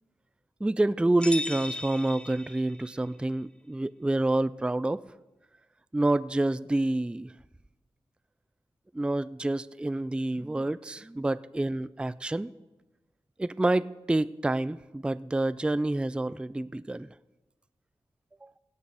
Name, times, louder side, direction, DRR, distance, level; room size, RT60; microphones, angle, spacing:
voice 1, 0.6-5.0 5.9-7.3 8.9-12.5 13.4-17.1, right 2 dB, 10° right, 16 dB, 0.3 m, -28 dB
sound 1, 1.2-3.0, left 2 dB, 10° left, 0.8 m, -37 dB
17.0 x 8.0 x 5.0 m, 1.1 s
cardioid pair, 60°, 10 cm